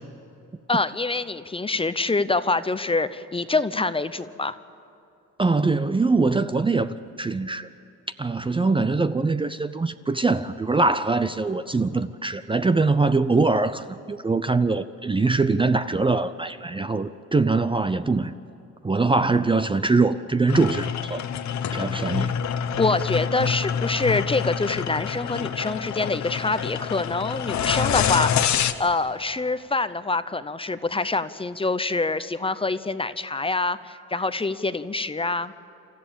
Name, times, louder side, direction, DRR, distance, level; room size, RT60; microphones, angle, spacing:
voice 1, 0.7-4.6 22.8-35.5, left 3 dB, 20° left, 0.7 m, -25 dB
voice 2, 5.4-7.7 8.2-18.3 18.8-21.3 21.7-22.4, right 3 dB, 15° right, 0.6 m, -23 dB
sound 1, 20.5-28.7, left 8 dB, 65° left, 1.1 m, -26 dB
28.0 x 14.0 x 8.8 m
cardioid pair, 90°, 30 cm